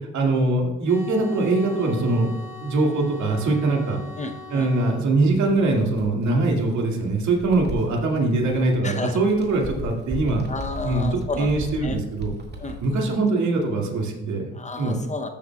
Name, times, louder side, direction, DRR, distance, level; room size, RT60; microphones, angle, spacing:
voice 1, 0.1-2.3 2.6-4.0 4.5-10.4 10.8-11.1 11.4-12.3 12.8-14.5 14.8-15.0, right 2 dB, 60° right, 0 dB, 2.2 m, -22 dB
sound 1, 0.8-5.0, left 3 dB, 10° right, 2.6 m, -41 dB
voice 2, 4.2-4.7 8.8-9.2 10.5-12.0 12.6-12.8 14.5-15.3, left 2 dB, 20° left, 6 dB, 0.7 m, -31 dB
Bird, 5.3-8.8 9.2-13.0, equal, 30° right, 2.0 m, -36 dB
13.5 x 7.2 x 2.3 m, 1.2 s
cardioid pair, 90°, 32 cm